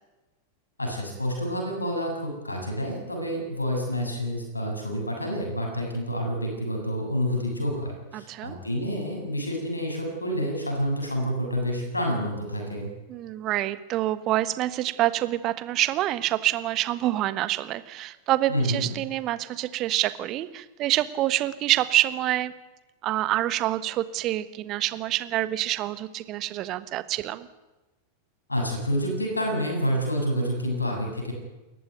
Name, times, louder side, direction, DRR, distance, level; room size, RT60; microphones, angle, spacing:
voice 1, 0.8-12.9 18.5-18.9 28.5-31.3, equal, 80° left, 2 dB, 7.4 m, -28 dB
voice 2, 8.1-8.6 13.1-22.5 23.0-27.5, right 14 dB, 35° right, 14 dB, 1.2 m, -27 dB
28.5 x 15.0 x 9.4 m, 1.1 s
figure-of-eight pair, 90°, 0 cm